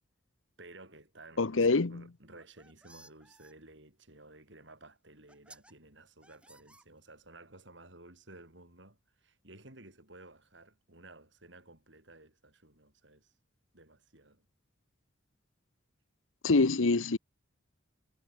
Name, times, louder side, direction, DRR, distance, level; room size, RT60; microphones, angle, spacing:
voice 1, 0.6-13.3 13.7-14.5, right 2 dB, 65° right, 6.9 m, -55 dB
voice 2, 1.4-2.0 16.4-17.2, left 3 dB, 90° left, 0.9 m, -25 dB
sound 1, 2.2-3.5 4.7-4.8 5.3-5.7 6.2-7.3, right 2 dB, 5° right, 3.8 m, -58 dB
head